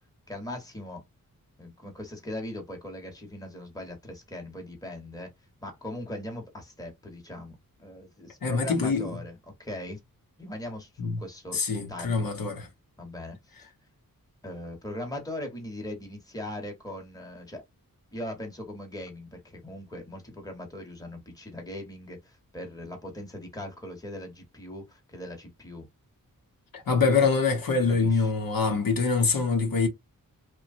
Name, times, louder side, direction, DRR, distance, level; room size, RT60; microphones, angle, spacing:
voice 1, 0.3-1.0 1.6-5.3 5.6-9.3 9.6-10.0 10.4-11.6 11.9-12.3 13.0-13.7 14.4-17.6 18.1-25.9 27.8-28.3, left 1 dB, 10° left, 1.0 m, -39 dB
voice 2, 8.4-9.2 11.0-11.2 11.5-12.7 26.7-29.9, left 4 dB, 75° left, 0.9 m, -24 dB
3.0 x 2.2 x 2.5 m
wide cardioid pair, 120°, 35 cm